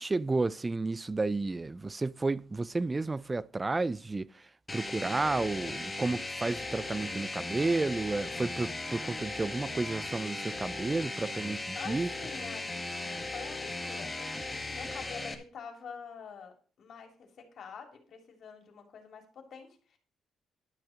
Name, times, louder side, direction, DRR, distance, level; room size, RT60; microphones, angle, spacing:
voice 1, 0.0-4.3 4.7-12.1, right 3 dB, 20° right, 0.4 m, -32 dB
sound 1, 4.7-15.3, left 2 dB, 15° left, 1.8 m, -37 dB
voice 2, 11.7-20.0, left 6 dB, 60° left, 3.1 m, -46 dB
12.0 x 6.3 x 5.1 m
cardioid pair, 90°, 0 cm